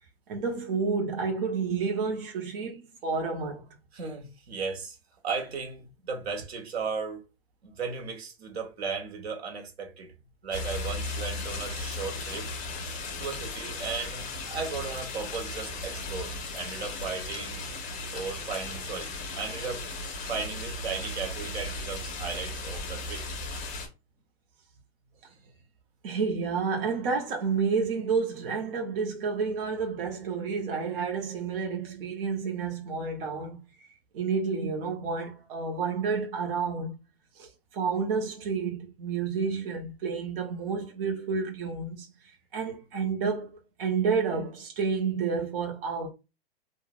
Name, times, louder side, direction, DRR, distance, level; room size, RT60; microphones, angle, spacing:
voice 1, 0.3-3.6 26.0-33.6 34.1-37.0 37.4-42.1 42.5-43.5 43.8-46.1, right 5 dB, 60° right, 0.9 m, -30 dB
voice 2, 3.9-5.0 5.2-7.2 7.6-10.1 10.4-12.5 13.2-17.6 18.1-19.9 20.3-23.3, right 5 dB, 85° right, 1.1 m, -36 dB
sound 1, 10.5-23.9, left 2 dB, 25° left, 0.9 m, -36 dB
3.0 x 2.4 x 2.4 m
hypercardioid pair, 125°, 31 cm